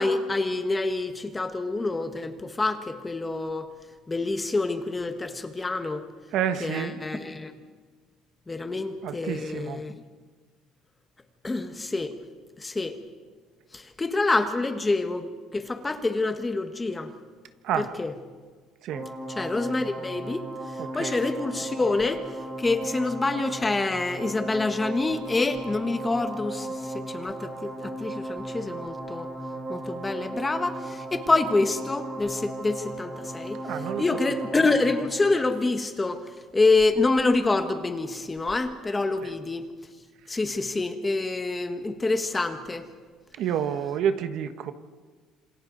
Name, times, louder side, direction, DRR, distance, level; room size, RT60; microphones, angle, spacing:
voice 1, 0.0-3.7 4.1-6.0 6.6-7.5 8.5-9.9 11.4-12.1 12.6-13.0 13.7-17.1 17.8-18.1 19.4-22.3 22.6-29.3 29.7-33.6 34.0-36.2 36.5-39.7 40.3-42.9, left 3 dB, 15° left, 7 dB, 1.4 m, -27 dB
voice 2, 6.3-7.0 9.0-9.8 17.6-17.9 18.8-19.1 20.8-21.2 33.6-34.0 39.2-39.3 43.4-44.7, right 9 dB, 60° right, 9 dB, 1.3 m, -29 dB
sound 1, 18.9-35.1, right 2 dB, 20° right, 3.4 m, -36 dB
27.5 x 25.5 x 4.0 m, 1.5 s
cardioid pair, 145°, 0 cm